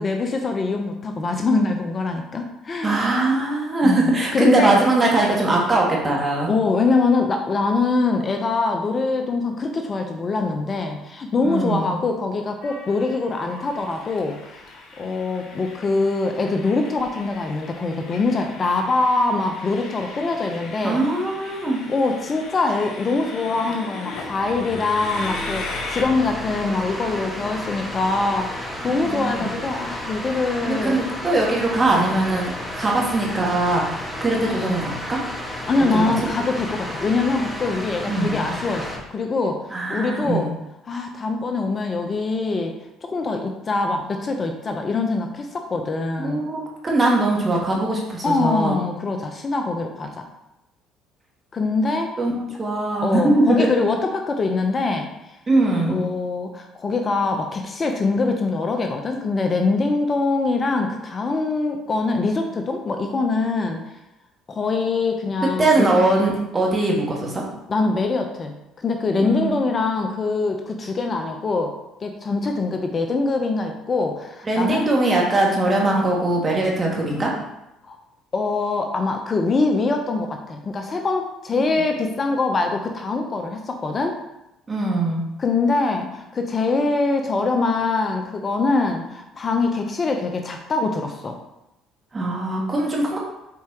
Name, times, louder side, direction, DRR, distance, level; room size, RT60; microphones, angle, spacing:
voice 1, 0.0-3.0 3.8-4.8 6.5-21.0 21.9-31.0 35.7-40.5 40.9-42.8 43.0-46.4 48.2-50.3 51.5-52.1 53.0-55.1 55.9-63.8 64.5-65.9 67.7-68.6 68.8-71.7 72.0-74.9 77.9-78.0 78.3-84.2 85.4-91.4, left 3 dB, 35° left, 4 dB, 0.8 m, -23 dB
voice 2, 2.8-6.5 11.4-11.9 20.8-21.8 29.1-29.5 30.7-33.9 34.2-35.2 35.9-36.1 38.1-38.4 39.7-40.5 46.2-48.8 52.2-52.3 52.6-53.7 55.5-56.0 65.6-67.4 69.2-69.5 74.5-77.3 84.7-85.2 92.1-93.2, right 2 dB, 30° right, -2 dB, 2.1 m, -21 dB
Train, 12.6-26.0, left 3 dB, 60° left, 1.3 m, -38 dB
sound 1, 24.1-39.0, left 1 dB, ahead, 1.7 m, -32 dB
7.3 x 4.4 x 3.0 m, 0.90 s
hypercardioid pair, 65°, 0 cm